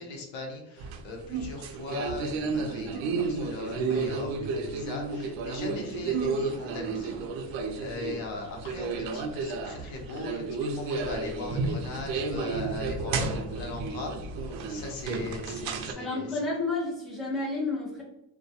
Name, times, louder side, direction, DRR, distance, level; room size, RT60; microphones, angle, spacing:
voice 1, 0.0-7.2 7.5-10.4 10.7-14.1 14.4-16.4, left 2 dB, 80° left, 1 dB, 0.8 m, -39 dB
sound 1, 0.8-15.9, right 4 dB, 75° right, 0.5 m, -32 dB
voice 2, 16.0-18.0, left 3 dB, ahead, -6 dB, 0.6 m, -31 dB
2.3 x 2.1 x 2.7 m, 0.87 s
cardioid pair, 155°, 45 cm